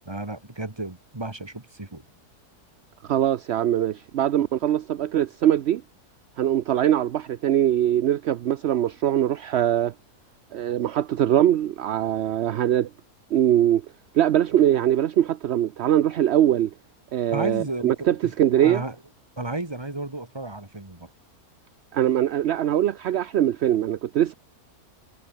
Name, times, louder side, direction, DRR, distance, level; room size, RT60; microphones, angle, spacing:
voice 1, 0.1-2.1 17.3-19.0 19.4-21.1, right 2 dB, 15° right, 2.2 m, -33 dB
voice 2, 3.1-5.8 6.4-9.9 10.5-12.9 13.3-13.8 14.1-16.7 17.1-18.8 21.9-24.3, right 11 dB, 60° right, 0.7 m, -22 dB
omnidirectional pair, 1.6 m